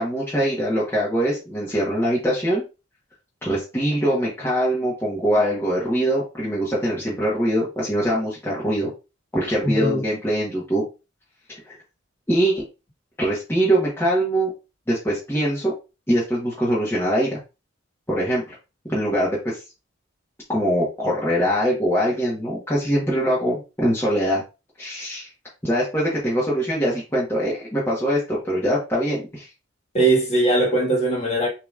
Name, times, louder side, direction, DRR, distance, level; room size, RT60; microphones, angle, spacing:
voice 1, 0.0-2.6 3.4-8.9 9.3-10.8 11.5-11.8 12.3-12.6 13.2-14.5 14.9-15.7 16.1-17.4 18.1-18.6 18.9-19.6 20.5-24.4 24.8-25.3 25.6-29.5, equal, 10° left, 1.2 m, -23 dB
voice 2, 9.6-10.0 29.9-31.5, right 2 dB, 30° left, 1.7 m, -20 dB
6.7 x 3.0 x 2.4 m
head